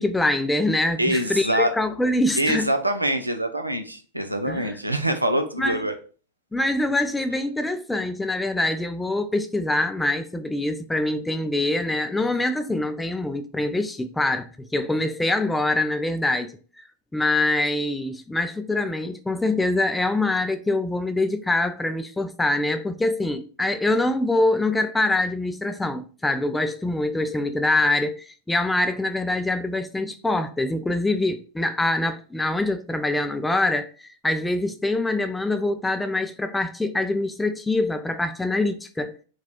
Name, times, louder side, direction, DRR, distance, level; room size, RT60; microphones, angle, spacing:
voice 1, 0.0-2.7 4.5-4.8 5.6-5.8 6.5-16.5 17.1-39.2, left 2 dB, 5° left, 0.4 m, -24 dB
voice 2, 1.0-1.7 2.4-5.9, right 1 dB, 85° right, 0.5 m, -24 dB
3.9 x 2.3 x 4.2 m
figure-of-eight pair, 90°, 0 cm